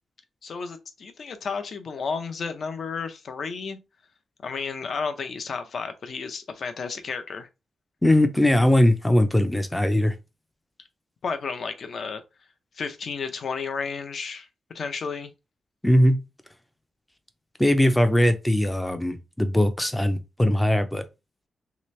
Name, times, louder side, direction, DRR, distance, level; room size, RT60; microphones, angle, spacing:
voice 1, 0.4-3.8 4.4-7.5 11.2-12.2 12.8-14.5 14.7-15.3, left 5 dB, 55° left, 0.6 m, -32 dB
voice 2, 8.0-10.1 15.8-16.2 17.6-21.0, left 1 dB, 5° left, 0.4 m, -20 dB
3.3 x 2.9 x 3.1 m
wide cardioid pair, 170°, 0 cm